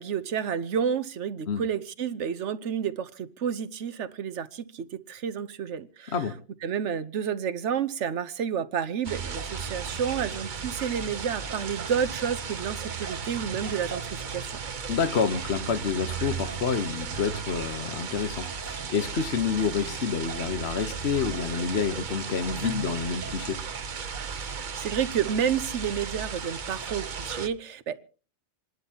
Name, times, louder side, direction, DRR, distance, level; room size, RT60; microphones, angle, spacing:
voice 1, 0.0-6.1 6.6-14.5 24.3-28.0, right 7 dB, 90° right, 1.2 m, -30 dB
sound 1, 9.0-27.5, right 6 dB, 45° right, 0.9 m, -35 dB
voice 2, 14.9-23.6, left 6 dB, 65° left, 1.3 m, -28 dB
28.0 x 12.0 x 2.9 m
omnidirectional pair, 1.2 m